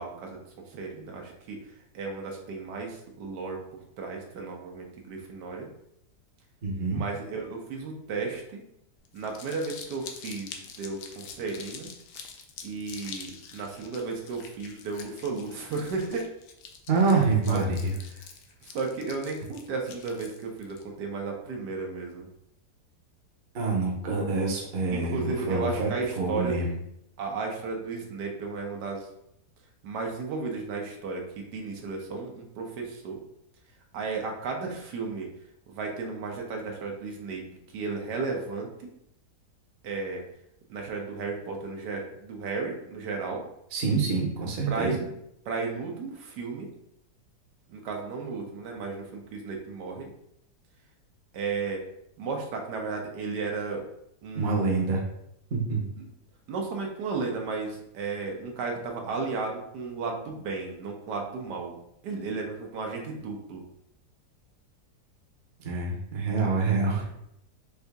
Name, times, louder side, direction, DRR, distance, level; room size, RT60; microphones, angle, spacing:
voice 1, 0.0-5.7 6.9-8.6 9.1-11.9 12.6-16.3 16.9-17.2 17.5-17.6 18.6-22.3 24.9-26.6 27.2-29.1 29.8-33.2 33.9-35.3 35.7-37.4 37.7-38.9 39.8-40.2 40.7-43.5 44.7-45.1 45.4-46.7 47.7-50.1 51.3-51.8 52.2-53.9 54.2-54.9 56.0-56.1 56.5-61.8 62.0-63.7, right 4 dB, 85° right, 1 dB, 1.4 m, -34 dB
voice 2, 6.6-7.0 16.9-17.9 23.5-25.9 26.2-26.7 43.7-44.9 54.3-55.0 55.5-55.8 65.6-67.1, right 4 dB, 45° right, -1 dB, 0.9 m, -26 dB
Crumpling crinkling, 9.0-20.8, left 6 dB, 80° left, 1.2 m, -46 dB
4.8 x 2.7 x 3.4 m, 0.77 s
omnidirectional pair, 1.8 m